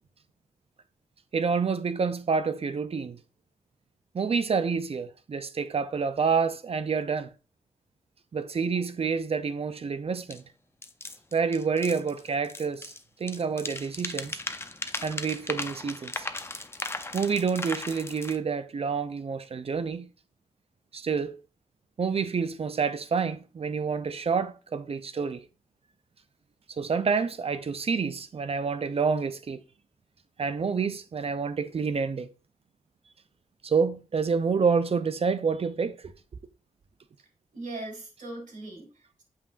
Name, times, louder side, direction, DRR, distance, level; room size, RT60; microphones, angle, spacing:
voice 1, 1.3-3.2 4.1-7.3 8.3-10.4 11.3-12.9 13.2-14.4 15.0-16.3 17.1-20.1 20.9-21.4 22.0-25.4 26.8-29.6 30.4-32.3 33.6-36.1, right 5 dB, 50° right, 0.6 m, -28 dB
sound 1, 10.3-10.4 10.8-13.0 13.3-18.4, left 2 dB, 20° left, 0.6 m, -37 dB
voice 2, 37.5-39.2, right 2 dB, 90° right, 4.0 m, -40 dB
8.5 x 7.4 x 2.5 m
wide cardioid pair, 160°, 13 cm